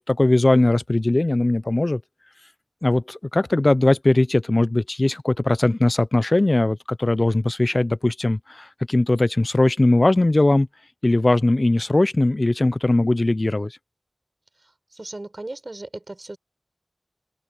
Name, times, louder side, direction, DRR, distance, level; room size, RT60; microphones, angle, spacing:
voice 1, 0.0-2.0 2.8-10.7 11.0-13.8, left 2 dB, 50° left, 0.7 m, -20 dB
voice 2, 14.6-16.4, right 2 dB, 55° right, 7.0 m, -37 dB
open air
wide cardioid pair, 40°, 0 cm